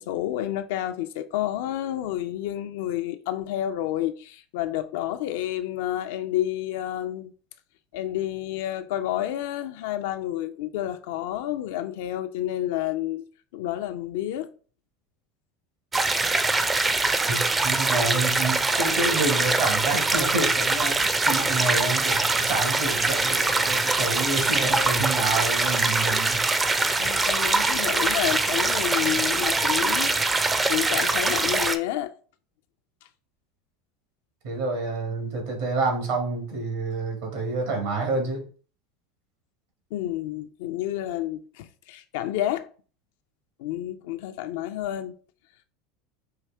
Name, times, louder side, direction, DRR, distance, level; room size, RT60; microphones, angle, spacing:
voice 1, 0.0-7.3 7.9-13.3 13.5-14.5 27.0-32.1 39.9-42.7 43.6-45.1, left 13 dB, 70° left, 0.4 m, -30 dB
sound 1, 15.9-31.8, right 3 dB, 20° right, 0.5 m, -23 dB
voice 2, 17.3-26.4 34.4-38.4, right 3 dB, 75° right, 1.7 m, -28 dB
4.7 x 2.6 x 3.3 m
hypercardioid pair, 95°, 0 cm